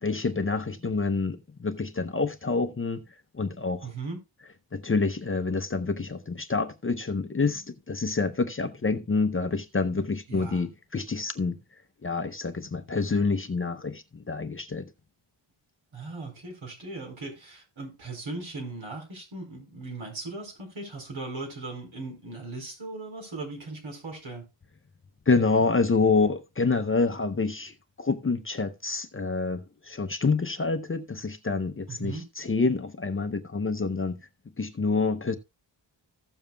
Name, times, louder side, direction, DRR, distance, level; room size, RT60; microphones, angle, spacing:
voice 1, 0.0-3.0 3.3-3.9 4.7-11.5 12.0-14.8 25.3-34.2 34.6-35.4, left 4 dB, 30° left, 0.6 m, -27 dB
voice 2, 3.8-4.2 10.3-10.6 15.9-24.4 31.9-32.2, right 3 dB, 80° right, 4.3 m, -38 dB
15.5 x 7.1 x 2.2 m
wide cardioid pair, 175°, 46 cm